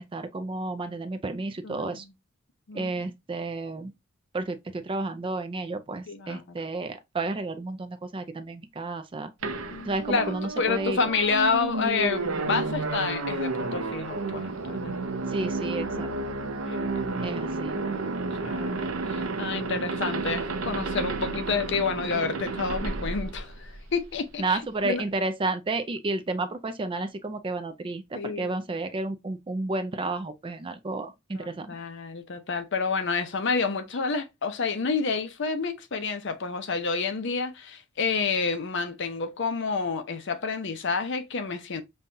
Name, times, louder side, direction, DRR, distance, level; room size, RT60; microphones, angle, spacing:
voice 1, 0.0-2.0 2.7-3.9 4.3-9.3 9.8-11.0 15.3-16.1 17.2-17.8 24.4-31.7, right 2 dB, 25° right, 0.4 m, -31 dB
voice 2, 1.6-2.0 2.7-3.0 6.1-6.6 9.7-15.0 15.8-17.4 18.4-25.0 28.1-28.7 31.3-41.8, left 4 dB, 60° left, 0.6 m, -29 dB
sound 1, 9.4-24.2, right 3 dB, 75° right, 0.6 m, -31 dB
5.4 x 2.3 x 2.6 m
head